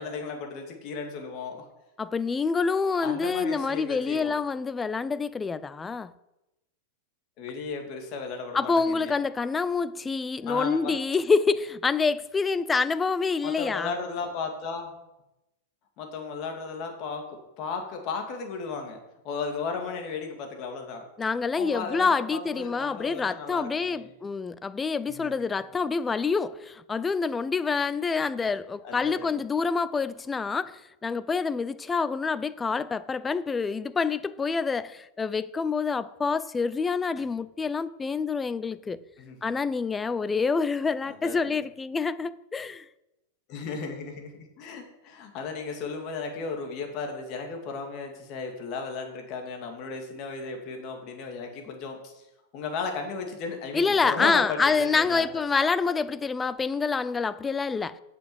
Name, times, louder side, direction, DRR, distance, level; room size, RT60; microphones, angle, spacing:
voice 1, 0.0-1.7 3.0-4.4 7.4-9.2 10.5-10.9 13.4-15.0 16.0-19.0 19.2-21.1 21.6-24.1 25.1-25.5 28.8-29.4 39.2-39.5 41.0-41.6 43.5-52.2 52.5-55.3, left 4 dB, 40° left, 2.5 m, -35 dB
voice 2, 2.0-6.1 8.5-13.9 21.2-39.0 39.4-42.8 53.7-58.0, left 4 dB, 15° left, 0.4 m, -27 dB
8.4 x 6.9 x 8.0 m
supercardioid pair, 140°, 0 cm